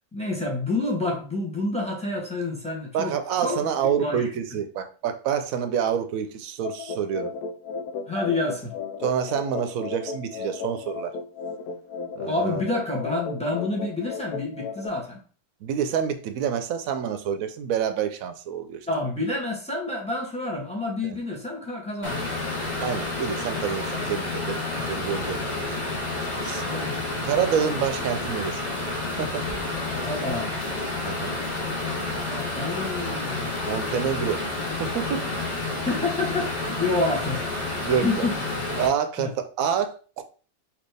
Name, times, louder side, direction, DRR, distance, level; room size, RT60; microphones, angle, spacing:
voice 1, 0.1-3.1 3.4-3.6 4.0-4.3 8.1-8.7 12.3-15.2 18.9-22.2 23.9-24.0 24.7-24.8 26.7-27.0 29.9-30.5 32.2-33.5 35.8-37.5 37.8-38.4 39.2-39.3, left 2 dB, 5° left, 1.0 m, -28 dB
voice 2, 2.9-7.3 9.0-11.2 12.2-12.6 15.6-18.9 21.0-21.2 22.8-24.6 24.9-25.7 26.4-26.7 27.2-28.8 29.2-29.5 31.0-31.4 33.7-34.5 34.8-35.3 37.9-38.3 38.8-40.2, right 8 dB, 75° right, 1.0 m, -27 dB
sound 1, 6.6-14.9, left 5 dB, 85° left, 1.1 m, -35 dB
sound 2, 22.0-38.9, left 2 dB, 30° left, 1.3 m, -30 dB
4.2 x 2.9 x 3.3 m
omnidirectional pair, 1.6 m